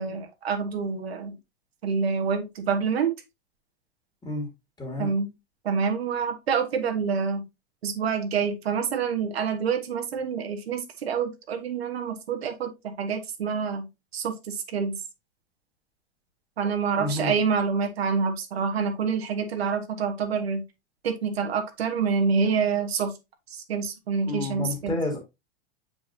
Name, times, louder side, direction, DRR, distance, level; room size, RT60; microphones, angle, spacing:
voice 1, 0.0-1.4 1.8-3.1 5.0-5.3 5.6-7.5 7.8-15.0 16.6-20.6 21.0-23.1 23.5-25.0, right 6 dB, 80° right, 1.3 m, -27 dB
voice 2, 4.8-5.1 17.0-17.3 24.3-25.2, left 2 dB, 15° left, 2.4 m, -30 dB
7.2 x 4.9 x 2.7 m
hypercardioid pair, 95°, 31 cm